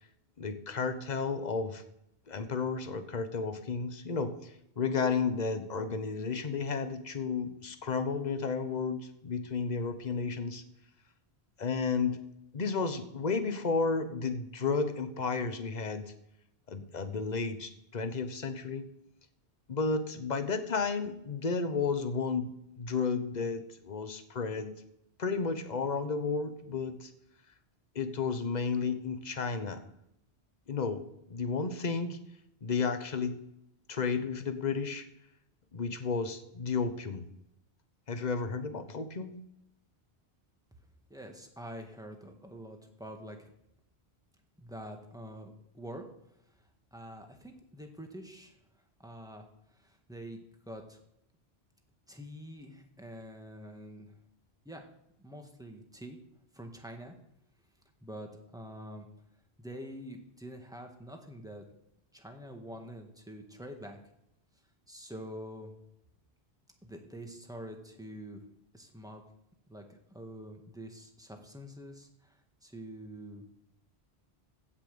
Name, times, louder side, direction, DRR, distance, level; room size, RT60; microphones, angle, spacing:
voice 1, 0.4-1.8 2.3-10.6 11.6-12.2 12.5-16.1 16.7-18.9 19.7-22.5 22.8-24.7 25.2-27.1 27.9-29.8 30.7-32.2 32.6-33.4 33.9-35.0 35.7-37.2 38.1-39.3, left 5 dB, 45° left, 9 dB, 1.1 m, -32 dB
voice 2, 41.1-43.5 44.6-46.0 46.9-48.6 49.0-49.4 49.7-51.0 52.1-54.1 54.6-54.9 55.2-56.2 56.5-57.1 58.0-59.1 59.6-61.6 62.1-64.0 64.9-65.7 66.8-68.4 68.7-69.2 69.7-73.4, equal, 5° right, 3 dB, 1.7 m, -46 dB
16.0 x 5.8 x 6.9 m, 0.80 s
omnidirectional pair, 1.1 m